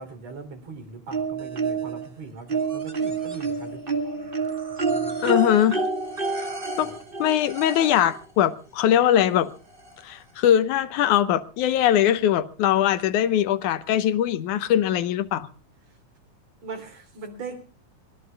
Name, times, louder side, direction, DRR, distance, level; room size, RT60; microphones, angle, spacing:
voice 1, 0.0-5.3 6.8-6.9 16.6-17.7, right 4 dB, 60° right, 4.3 m, -40 dB
sound 1, 1.1-2.1 2.5-8.2 9.4-9.5 9.9-10.0, right 3 dB, 20° right, 1.7 m, -28 dB
voice 2, 5.2-5.8 6.8-6.9 7.2-9.5 10.0-15.5, left 10 dB, 80° left, 2.4 m, -21 dB
24.5 x 20.5 x 2.3 m
omnidirectional pair, 3.5 m